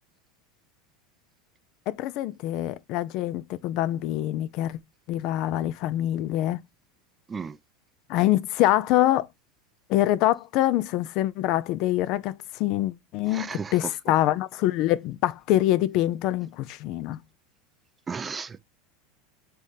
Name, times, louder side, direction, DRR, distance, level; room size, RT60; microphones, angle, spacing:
voice 1, 1.9-4.8 5.1-6.6 8.1-9.3 9.9-17.2, left 14 dB, 55° left, 0.4 m, -25 dB
voice 2, 13.3-13.9 18.1-18.6, right 5 dB, 20° right, 0.4 m, -34 dB
3.6 x 3.4 x 4.1 m
hypercardioid pair, 105°, 0 cm